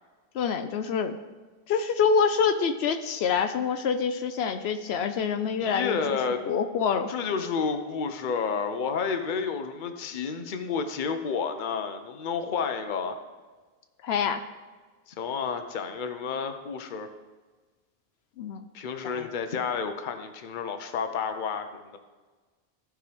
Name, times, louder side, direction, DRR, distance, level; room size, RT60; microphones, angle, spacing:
voice 1, 0.3-1.1 1.7-6.2 6.5-7.1 14.0-14.4 18.4-18.6 19.0-19.3, left 6 dB, 80° left, 8 dB, 0.8 m, -26 dB
voice 2, 5.6-6.4 7.1-13.2 15.1-17.1 18.7-22.0, left 5 dB, 55° left, 8 dB, 0.8 m, -30 dB
14.5 x 5.0 x 3.4 m, 1.3 s
omnidirectional pair, 1.1 m